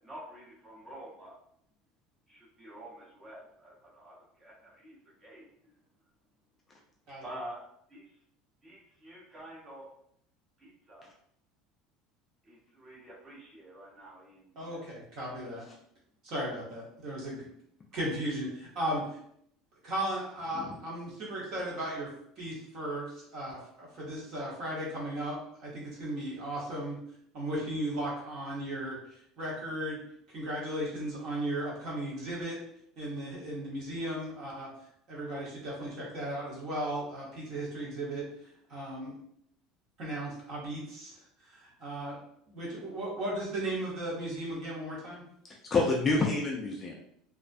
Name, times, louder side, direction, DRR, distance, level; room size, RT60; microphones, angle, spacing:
voice 1, 0.0-1.3 2.3-5.7 7.2-7.6 7.9-8.1 8.6-9.9 10.6-11.1 12.4-14.9 17.9-18.1, right 1 dB, 15° right, -5 dB, 0.8 m, -48 dB
voice 2, 14.6-15.6 16.2-17.5 17.9-19.0 19.8-22.1 22.4-27.0 27.3-29.0 29.4-30.0 30.3-32.6 33.0-34.7 35.1-38.2 38.7-39.1 40.0-42.2 42.5-45.2, right 1 dB, 45° right, -4 dB, 0.9 m, -36 dB
voice 3, 45.5-46.9, left 3 dB, 20° left, -1 dB, 0.3 m, -28 dB
2.4 x 2.1 x 2.5 m, 0.69 s
cardioid pair, 165°, 0 cm